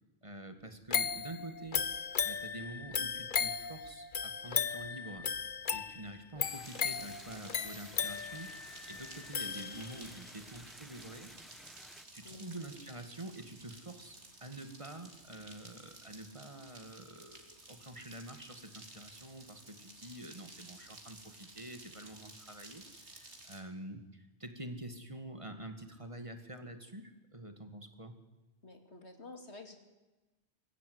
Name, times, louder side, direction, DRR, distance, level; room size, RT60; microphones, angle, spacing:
voice 1, 0.2-1.9 2.2-5.3 5.7-11.3 11.8-11.9 12.1-28.1, right 1 dB, 30° right, 7 dB, 2.1 m, -47 dB
sound 1, 0.9-10.2 10.6-10.7, left 6 dB, 50° left, 1.0 m, -36 dB
sound 2, 6.4-12.0, equal, ahead, 0.9 m, -55 dB
sound 3, 6.6-23.6, right 2 dB, 90° right, 3.5 m, -54 dB
voice 2, 12.2-12.8 28.6-29.8, left 3 dB, 80° left, 6 dB, 2.9 m, -51 dB
24.0 x 15.5 x 9.5 m, 1.1 s
omnidirectional pair, 1.1 m